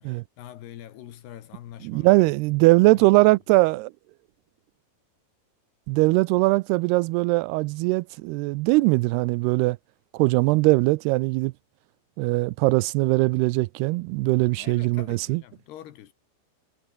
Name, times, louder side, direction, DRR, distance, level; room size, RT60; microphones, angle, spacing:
voice 1, 0.0-2.3 2.9-3.1 14.6-16.1, left 11 dB, 80° left, 3.8 m, -44 dB
voice 2, 1.8-3.9 5.9-9.8 10.1-11.5 12.2-15.4, right 22 dB, 85° right, 2.5 m, -21 dB
omnidirectional pair, 4.7 m